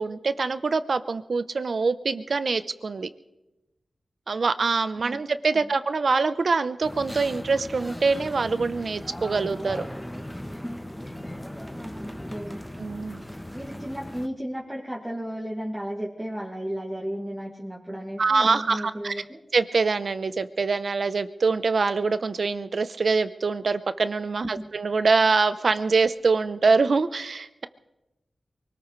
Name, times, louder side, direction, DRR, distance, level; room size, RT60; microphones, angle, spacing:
voice 1, 0.0-3.1 4.3-9.9 12.8-13.2 18.2-19.1 19.5-27.7, right 4 dB, 70° right, 12 dB, 0.8 m, -24 dB
sound 1, 6.8-14.3, equal, 5° left, 1.2 m, -37 dB
voice 2, 11.7-12.7 13.5-19.4 24.4-24.7, equal, 10° right, -5 dB, 2.3 m, -34 dB
24.0 x 18.5 x 3.2 m, 0.97 s
cardioid pair, 55°, 0 cm